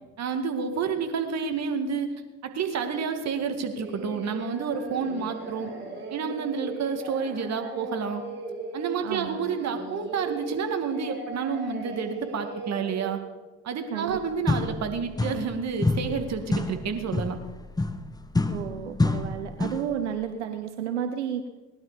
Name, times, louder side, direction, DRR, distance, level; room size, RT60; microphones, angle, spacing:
voice 1, 0.2-2.1 2.4-5.7 6.1-8.2 8.7-13.2 13.6-17.4, right 6 dB, 50° right, 6 dB, 2.2 m, -29 dB
Singing, 3.7-13.2, right 3 dB, 35° right, 5.1 m, -38 dB
voice 2, 9.0-9.4 13.9-14.2 18.5-21.5, right 9 dB, 90° right, 7 dB, 0.8 m, -32 dB
sound 1, 14.1-14.2 14.5-15.6 15.8-19.9, left 2 dB, 10° left, 1.1 m, -28 dB
19.0 x 11.0 x 5.2 m, 1.2 s
hypercardioid pair, 60°, 34 cm